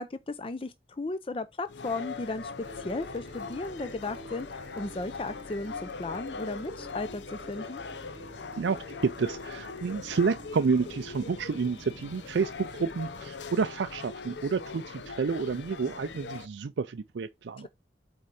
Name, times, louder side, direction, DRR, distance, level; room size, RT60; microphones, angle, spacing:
voice 1, 0.0-7.8, left 2 dB, 30° left, 0.5 m, -35 dB
sound 1, 1.7-16.5, left 4 dB, 80° left, 0.7 m, -41 dB
sound 2, 2.6-13.3, right 2 dB, 30° right, 0.9 m, -50 dB
voice 2, 8.6-17.7, right 5 dB, 80° right, 0.4 m, -30 dB
8.4 x 3.8 x 4.8 m
head